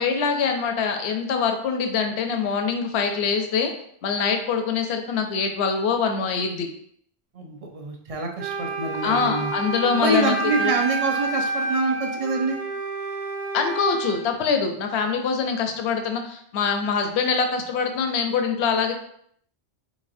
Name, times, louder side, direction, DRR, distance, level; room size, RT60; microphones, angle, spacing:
voice 1, 0.0-3.7 4.0-6.7 9.0-10.7 13.5-18.9, left 5 dB, 80° left, 5 dB, 0.9 m, -24 dB
voice 2, 7.3-9.5 9.9-12.6, right 2 dB, 45° right, 2 dB, 0.5 m, -26 dB
Wind instrument woodwind instrument, 8.4-14.3, right 3 dB, 70° right, 0.9 m, -29 dB
4.1 x 3.7 x 2.6 m, 0.67 s
omnidirectional pair, 1.1 m